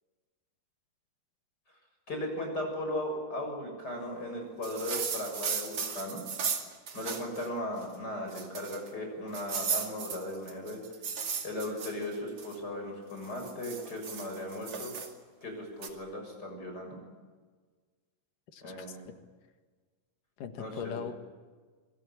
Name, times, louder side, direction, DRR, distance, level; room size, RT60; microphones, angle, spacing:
voice 1, 2.1-6.2 6.9-10.8 11.4-14.9 15.4-17.0 18.6-19.1 20.6-21.0, left 1 dB, 30° left, 2 dB, 7.4 m, -37 dB
sound 1, 4.6-7.5 7.8-7.9 8.3-8.9 9.3-12.6 13.1-15.1 15.8-15.9, right 6 dB, 50° right, 3.2 m, -36 dB
voice 2, 18.5-19.1 20.4-21.1, left 7 dB, 85° left, 8 dB, 3.3 m, -40 dB
26.0 x 22.5 x 8.6 m, 1.4 s
omnidirectional pair, 3.7 m